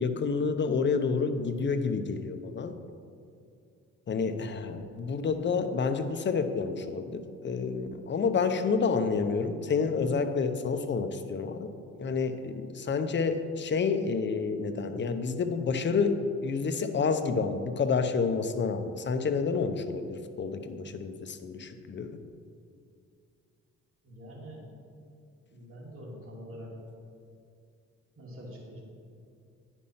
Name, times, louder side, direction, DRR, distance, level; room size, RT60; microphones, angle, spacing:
voice 1, 0.0-2.7 4.1-11.7 12.0-22.1, left 5 dB, 40° left, 8 dB, 0.7 m, -29 dB
voice 2, 24.0-24.7 25.5-26.7 28.2-28.8, equal, 45° right, -4 dB, 2.3 m, -45 dB
9.9 x 5.4 x 5.6 m, 2.4 s
cardioid pair, 90°, 30 cm